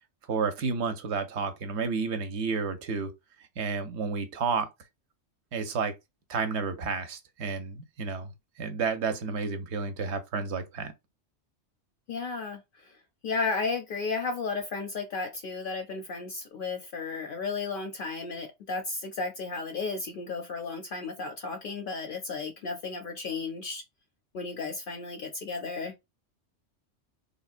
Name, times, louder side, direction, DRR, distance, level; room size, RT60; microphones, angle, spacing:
voice 1, 0.3-3.1 3.6-4.7 5.5-5.9 6.3-8.3 8.6-10.9, right 5 dB, 70° right, 0.8 m, -31 dB
voice 2, 12.1-13.0 13.2-23.8 24.3-25.9, left 4 dB, 60° left, 0.6 m, -34 dB
3.4 x 2.1 x 2.4 m
omnidirectional pair, 1.2 m